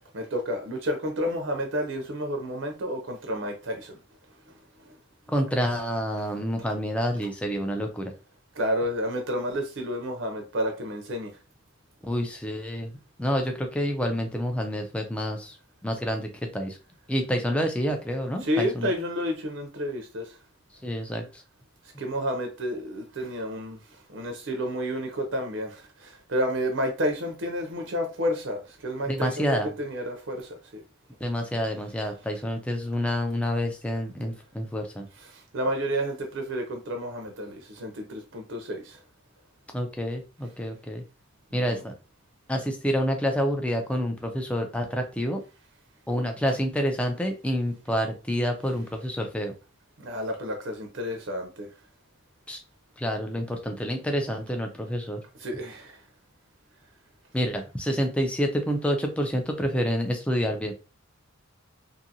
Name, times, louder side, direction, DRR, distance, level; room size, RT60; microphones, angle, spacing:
voice 1, 0.1-4.0 4.5-4.6 4.8-5.0 6.3-6.4 8.5-11.3 18.4-20.4 22.0-30.8 35.1-39.0 41.5-41.8 50.0-51.7 55.4-56.0, equal, 55° right, 0.5 m, -30 dB
voice 2, 5.3-8.1 12.0-12.9 13.2-15.6 15.8-16.8 17.1-18.9 20.8-21.4 29.1-29.7 31.2-35.1 39.7-41.0 41.5-41.9 42.5-45.4 46.1-49.5 52.5-52.6 53.0-55.2 57.3-60.7, equal, 5° left, 0.3 m, -28 dB
2.6 x 2.5 x 2.7 m
head